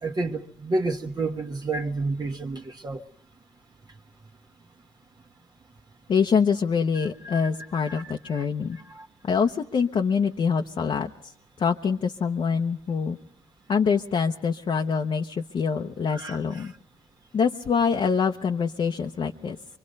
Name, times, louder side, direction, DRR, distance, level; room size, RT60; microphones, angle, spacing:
voice 1, 0.0-3.0 7.2-7.5 7.8-8.0 8.3-8.4 8.9-9.0 16.1-16.4, right 3 dB, 35° right, 1.3 m, -30 dB
voice 2, 6.1-8.8 9.2-11.1 11.6-13.2 13.7-16.7 17.3-19.6, left 6 dB, 50° left, 1.0 m, -25 dB
24.5 x 24.0 x 5.4 m
supercardioid pair, 70°, 12 cm